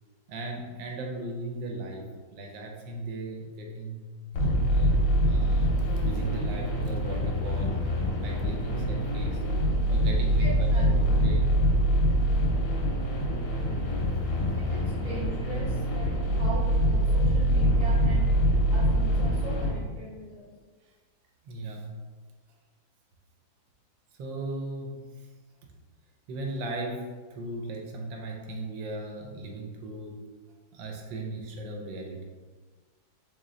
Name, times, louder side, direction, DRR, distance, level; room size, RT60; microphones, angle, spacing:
voice 1, 0.3-4.0 4.7-4.9 5.2-7.8 8.2-9.4 9.9-11.4 14.5-14.6 21.4-21.9 24.2-25.3 26.3-30.2 30.7-32.3, right 2 dB, 80° right, 1 dB, 1.4 m, -37 dB
sound 1, 4.3-19.7, equal, 80° left, 1.9 m, -25 dB
voice 2, 10.4-11.3 14.6-18.3 18.7-20.5, right 2 dB, 40° left, -8 dB, 0.5 m, -40 dB
4.0 x 3.1 x 3.8 m, 1.4 s
omnidirectional pair, 2.1 m